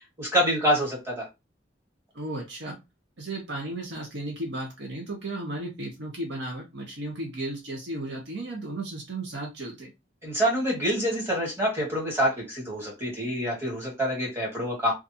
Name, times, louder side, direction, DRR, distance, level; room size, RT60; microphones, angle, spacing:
voice 1, 0.2-1.2 10.2-14.9, equal, 15° right, -3 dB, 1.5 m, -26 dB
voice 2, 2.1-2.8 3.2-9.9, right 2 dB, 65° right, 1 dB, 0.7 m, -34 dB
2.5 x 2.3 x 2.6 m, 0.23 s
head